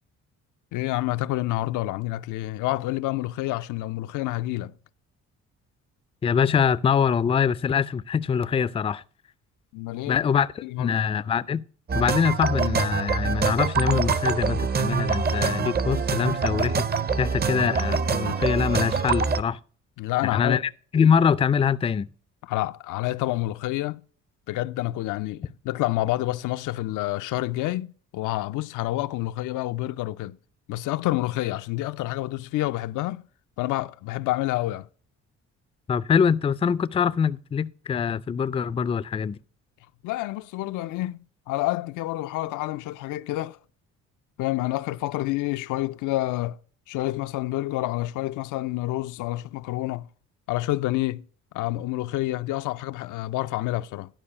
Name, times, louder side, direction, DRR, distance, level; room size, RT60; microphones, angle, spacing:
voice 1, 0.7-4.7 9.7-11.0 20.0-20.6 22.5-24.0 24.5-30.4 30.7-33.2 33.6-34.9 40.0-43.6 44.4-46.6 46.9-50.1 50.5-51.2 51.5-54.1, left 17 dB, 85° left, 0.5 m, -28 dB
voice 2, 6.2-9.0 10.1-11.6 11.9-16.9 17.2-19.6 20.3-20.6 20.9-22.1 35.9-39.4, left 7 dB, 20° left, 0.3 m, -24 dB
sound 1, 11.9-19.4, right 5 dB, 35° right, 0.6 m, -25 dB
11.0 x 4.7 x 5.6 m
cardioid pair, 90°, 30 cm